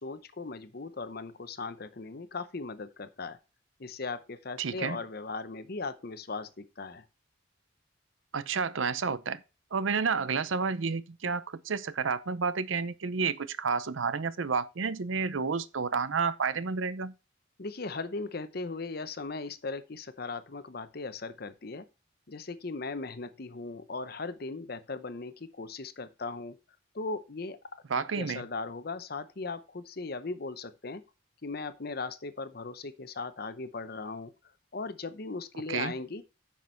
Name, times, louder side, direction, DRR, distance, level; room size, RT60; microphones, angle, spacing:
voice 1, 0.0-3.4 3.8-7.0 17.6-21.9 22.3-26.6 26.9-27.6 27.9-31.0 31.4-34.3 34.7-36.2, left 3 dB, 55° left, 0.8 m, -38 dB
voice 2, 4.6-5.0 8.3-9.4 9.7-17.1 27.9-28.4 35.7-35.9, right 5 dB, 85° right, 0.6 m, -30 dB
9.5 x 5.9 x 4.5 m
head